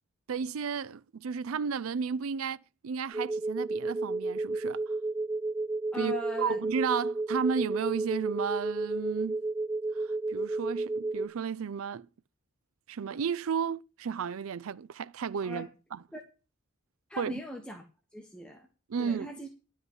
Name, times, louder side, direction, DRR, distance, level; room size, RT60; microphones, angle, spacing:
voice 1, 0.3-2.6 2.8-4.8 5.9-9.4 9.9-12.1 12.9-16.0 17.2-17.4 18.9-19.3, right 6 dB, 90° right, 0.5 m, -33 dB
sound 1, 3.1-11.3, right 2 dB, 10° right, 1.9 m, -32 dB
voice 2, 5.9-6.6 15.4-15.7 16.1-16.2 17.1-17.8 18.1-18.6 19.0-19.5, equal, 5° left, 1.3 m, -39 dB
11.0 x 5.6 x 8.0 m
head